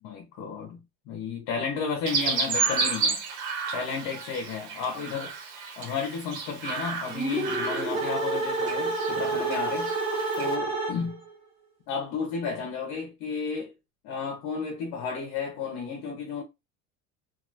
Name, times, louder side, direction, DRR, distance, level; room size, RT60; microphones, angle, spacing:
voice 1, 0.0-3.2 3.7-5.3 5.8-9.9 10.4-11.2 11.9-13.7 14.0-16.4, left 5 dB, 55° left, 1.1 m, -33 dB
Chirp tweet, 2.1-10.6, right 5 dB, 85° right, 1.2 m, -32 dB
sound 1, 7.1-11.3, right 3 dB, 15° right, 0.9 m, -29 dB
3.0 x 2.7 x 2.6 m
cardioid pair, 150°, 33 cm